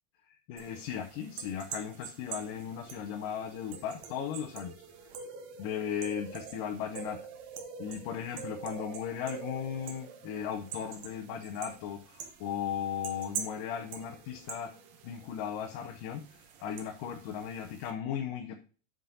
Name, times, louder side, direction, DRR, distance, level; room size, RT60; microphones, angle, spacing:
voice 1, 0.5-4.7 5.6-7.2 7.8-14.7 15.0-18.6, left 8 dB, 90° left, 3 dB, 2.4 m, -37 dB
sound 1, 0.6-17.9, right 7 dB, 65° right, 1.9 m, -45 dB
8.3 x 7.5 x 2.8 m, 0.38 s
omnidirectional pair, 3.8 m